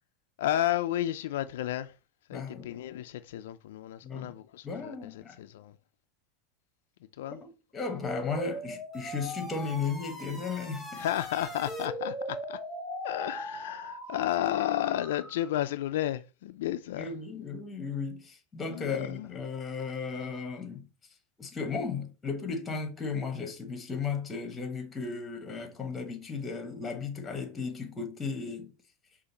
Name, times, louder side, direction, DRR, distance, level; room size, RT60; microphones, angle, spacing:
voice 1, 0.4-1.9 2.3-5.7 7.2-7.4 11.0-12.6 13.0-17.2 18.7-19.3, left 12 dB, 85° left, 0.3 m, -32 dB
voice 2, 2.3-2.8 4.0-4.3 4.6-5.4 7.3-11.1 16.9-20.9 21.4-28.7, left 5 dB, 15° left, 1.1 m, -35 dB
sound 1, 8.0-15.5, left 1 dB, 5° right, 1.2 m, -39 dB
4.9 x 2.5 x 4.1 m
supercardioid pair, 135°, 0 cm